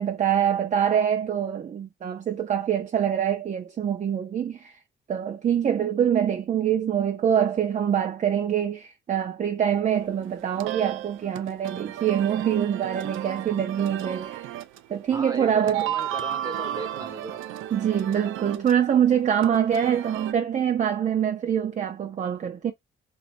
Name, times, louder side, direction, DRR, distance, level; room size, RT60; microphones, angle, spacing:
voice 1, 0.0-4.8 5.1-14.5 14.9-15.8 17.7-22.7, right 9 dB, 35° right, 0.5 m, -24 dB
sound 1, 9.9-20.3, right 12 dB, 90° right, 0.5 m, -34 dB
voice 2, 15.1-17.4, right 2 dB, 20° right, 1.1 m, -36 dB
3.2 x 2.8 x 2.5 m
cardioid pair, 90°, 20 cm